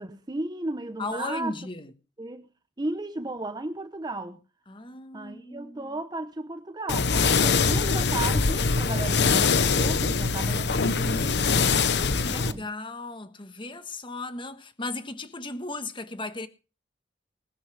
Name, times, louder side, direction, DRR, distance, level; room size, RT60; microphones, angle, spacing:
voice 1, 0.0-1.6 2.2-2.5 2.8-4.4 5.1-12.7, right 2 dB, 25° right, 0.9 m, -35 dB
voice 2, 1.0-1.9 4.7-5.9 12.1-16.5, left 2 dB, 30° left, 1.4 m, -36 dB
sound 1, 6.9-12.5, left 4 dB, 70° left, 0.9 m, -23 dB
20.0 x 12.0 x 3.4 m
head